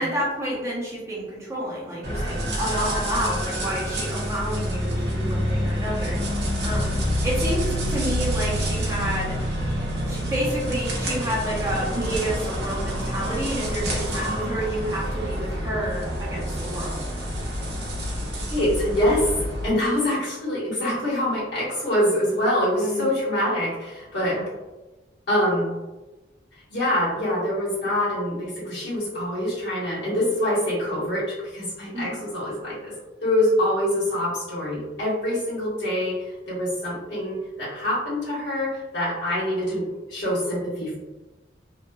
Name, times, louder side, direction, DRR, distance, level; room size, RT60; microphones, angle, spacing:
voice 1, 0.0-6.2 6.6-6.9 7.2-9.4 10.1-17.0 22.7-23.1 24.2-24.5 31.9-32.2, right 1 dB, 15° right, -6 dB, 0.7 m, -29 dB
sound 1, 2.0-19.7, equal, 65° right, 0.7 m, -27 dB
voice 2, 14.1-14.5 18.5-19.3 19.6-24.4 25.3-25.7 26.7-41.0, left 1 dB, 70° left, -7 dB, 1.3 m, -25 dB
2.8 x 2.2 x 2.2 m, 1.1 s
head